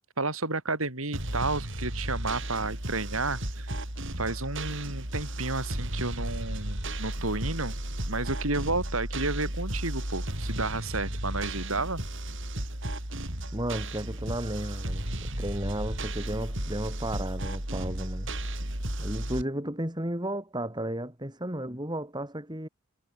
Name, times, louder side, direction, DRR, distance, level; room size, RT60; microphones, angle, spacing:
voice 1, 0.2-3.7 4.2-7.8 8.0-12.0 19.0-19.1, right 3 dB, 80° right, 7.4 m, -31 dB
sound 1, 1.1-19.4, right 1 dB, 60° right, 6.8 m, -34 dB
voice 2, 13.5-18.3 19.0-22.7, right 1 dB, 20° right, 7.9 m, -34 dB
head